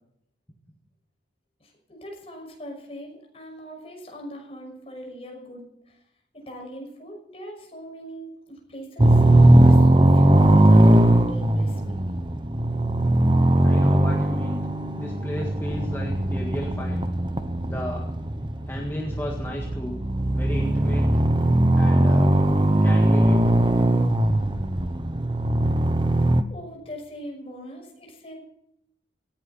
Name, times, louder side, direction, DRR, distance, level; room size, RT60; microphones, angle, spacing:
voice 1, 1.6-6.0 6.3-9.2 9.6-12.1 26.5-28.4, equal, 30° left, 1 dB, 6.0 m, -40 dB
sound 1, 9.0-26.4, right 1 dB, 25° right, 0.9 m, -19 dB
voice 2, 13.6-14.6 15.0-17.1 17.6-18.1 18.7-20.0 20.3-21.3 21.7-22.3 22.8-23.6, equal, 15° left, -1 dB, 1.8 m, -34 dB
18.0 x 16.0 x 4.3 m, 0.77 s
head